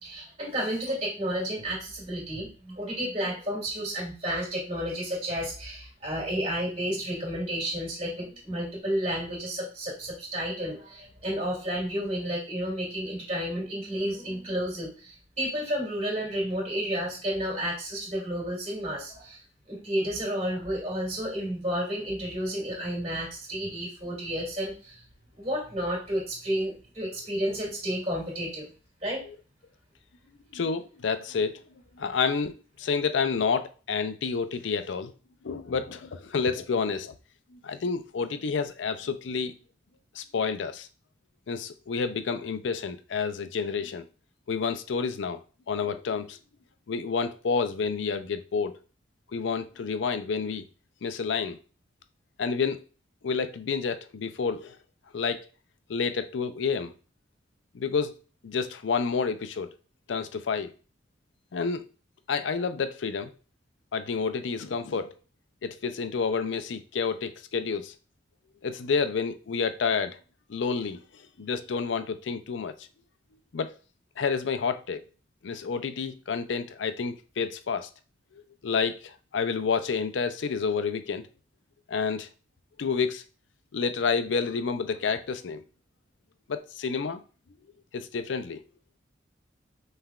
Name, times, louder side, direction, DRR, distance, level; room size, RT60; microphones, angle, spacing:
voice 1, 0.0-19.4 19.7-25.0 25.3-28.7 29.0-29.2 32.0-32.1, equal, 35° right, 2.3 m, -31 dB
voice 2, 30.5-31.6 32.0-35.1 35.4-37.1 37.5-39.5 40.1-40.9 41.5-44.1 44.5-45.4 45.7-46.4 46.9-48.7 49.3-50.6 51.0-51.6 52.4-52.8 53.2-54.8 55.1-55.5 55.9-56.9 57.7-58.1 58.4-59.7 60.1-60.7 61.5-61.8 62.3-63.3 63.9-65.1 65.6-67.9 68.6-70.2 70.5-72.7 73.5-73.7 74.2-75.0 75.4-77.9 78.6-81.2 81.9-82.3 82.8-83.2 83.7-85.6 86.5-87.2 87.9-88.6, left 5 dB, 80° left, 0.5 m, -29 dB
5.7 x 3.2 x 2.4 m
head